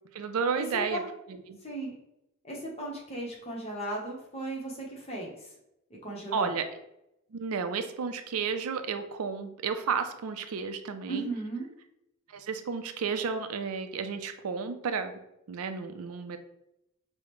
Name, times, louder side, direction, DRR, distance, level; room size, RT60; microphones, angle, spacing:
voice 1, 0.1-1.0 1.3-1.6 6.3-6.7 7.3-11.3 12.3-15.1 15.5-16.4, right 5 dB, 85° right, 9 dB, 0.4 m, -32 dB
voice 2, 2.4-5.3 6.0-6.5 11.1-11.7, right 2 dB, 30° left, -2 dB, 0.9 m, -36 dB
4.9 x 2.1 x 3.0 m, 0.84 s
head